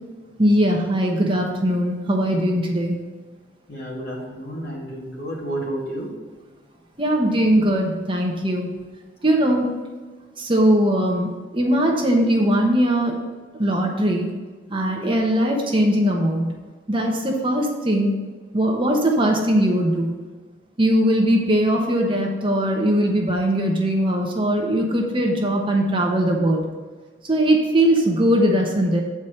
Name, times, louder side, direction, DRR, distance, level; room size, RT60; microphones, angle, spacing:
voice 1, 0.4-3.0 7.0-8.7 9.2-9.7 10.4-13.2 13.6-14.3 14.7-16.5 16.9-18.1 18.5-20.1 20.8-26.6 27.3-29.0, equal, 25° right, 0 dB, 1.0 m, -20 dB
voice 2, 3.7-6.1 11.6-11.8, right 1 dB, 55° left, -3 dB, 2.3 m, -31 dB
8.3 x 4.8 x 5.7 m, 1.4 s
head